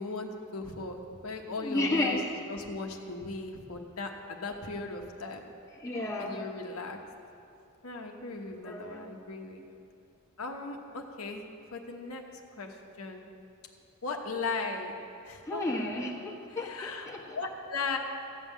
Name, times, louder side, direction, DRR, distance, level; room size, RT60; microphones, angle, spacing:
voice 1, 0.0-2.2 2.5-5.4 6.2-7.0 7.8-9.7 10.4-11.4 11.7-12.2 12.6-13.3 14.0-14.9 15.3-15.6 16.0-16.1 16.5-18.0, left 3 dB, 90° left, 2 dB, 1.1 m, -37 dB
voice 2, 1.6-2.2 5.8-6.4 8.6-9.1 15.5-17.4, left 2 dB, 15° left, -3 dB, 1.3 m, -32 dB
14.0 x 5.6 x 8.2 m, 2.6 s
head